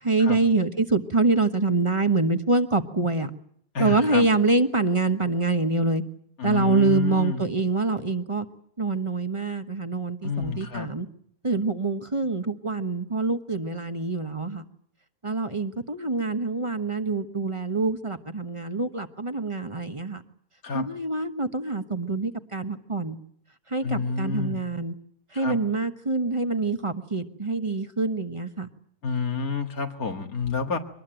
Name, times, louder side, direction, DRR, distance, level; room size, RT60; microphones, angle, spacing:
voice 1, 0.0-3.3 3.8-6.0 6.4-8.5 8.8-11.1 11.4-14.6 15.2-20.2 20.7-23.2 23.7-24.9 25.3-28.7, right 3 dB, 25° right, 9 dB, 1.1 m, -25 dB
voice 2, 3.7-4.3 6.4-7.4 10.2-10.9 20.6-20.9 23.8-24.6 25.3-25.6 29.0-30.8, left 4 dB, 80° left, 5 dB, 2.4 m, -29 dB
23.5 x 20.0 x 9.1 m, 0.66 s
omnidirectional pair, 1.5 m